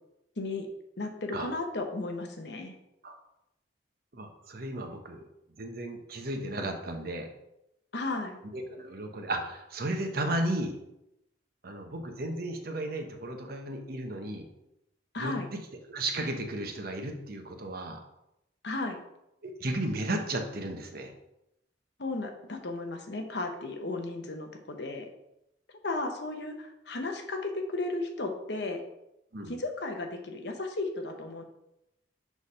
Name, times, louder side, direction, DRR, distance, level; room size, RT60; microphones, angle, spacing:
voice 1, 0.4-0.7 1.0-2.7 7.9-8.4 15.1-15.5 18.6-19.0 22.0-25.1 25.8-28.8 29.5-31.4, left 2 dB, 65° left, 4 dB, 0.9 m, -34 dB
voice 2, 4.1-5.2 5.6-7.3 8.5-10.8 11.6-14.5 15.2-15.3 15.9-18.0 19.4-21.1 29.3-29.5, right 1 dB, 55° right, 4 dB, 0.9 m, -34 dB
6.3 x 3.5 x 5.5 m, 0.85 s
head